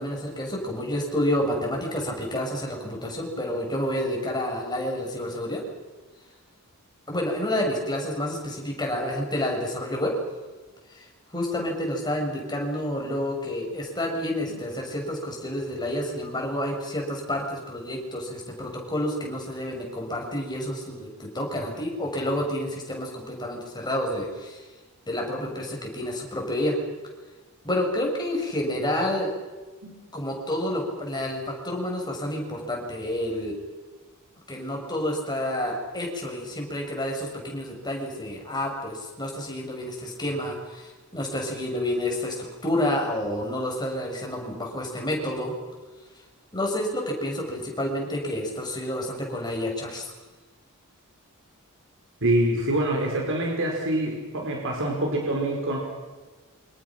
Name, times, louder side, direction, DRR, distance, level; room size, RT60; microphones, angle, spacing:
voice 1, 0.0-5.6 7.1-10.1 10.9-11.1 11.3-24.7 25.1-26.8 27.6-29.3 30.1-33.6 34.5-45.5 46.5-50.1, left 1 dB, 20° left, 0 dB, 6.4 m, -29 dB
voice 2, 52.2-55.8, right 1 dB, 60° right, 0 dB, 4.8 m, -25 dB
28.0 x 25.5 x 6.1 m, 1.3 s
head